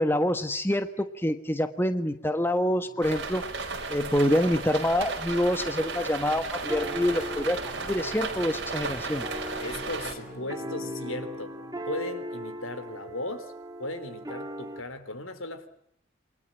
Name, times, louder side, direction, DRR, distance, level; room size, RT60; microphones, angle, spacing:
voice 1, 0.0-3.4 3.9-9.3, left 1 dB, 10° left, 1.3 m, -26 dB
sound 1, 2.0-12.5, left 1 dB, 50° left, 5.5 m, -50 dB
sound 2, 3.0-10.1, right 4 dB, 60° right, 5.1 m, -34 dB
sound 3, 5.3-14.8, right 1 dB, 20° right, 2.2 m, -39 dB
voice 2, 9.6-11.6 11.9-13.5 13.8-15.7, left 2 dB, 85° left, 3.5 m, -36 dB
28.0 x 24.0 x 8.9 m
head